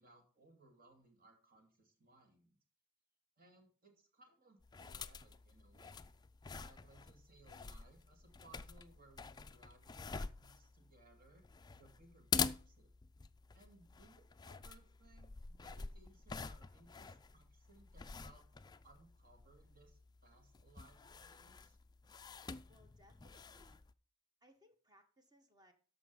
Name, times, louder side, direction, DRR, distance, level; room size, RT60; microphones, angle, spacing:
voice 1, 0.0-2.6 3.4-6.1 6.6-11.4 11.7-12.9 13.5-18.5 18.8-21.8, right 2 dB, 45° right, 4 dB, 2.7 m, -65 dB
sound 1, 4.6-23.9, left 5 dB, 20° left, 0.4 m, -46 dB
voice 2, 22.7-23.8 24.4-25.7, equal, 20° right, 6 dB, 1.6 m, -67 dB
13.5 x 5.4 x 5.5 m, 0.40 s
head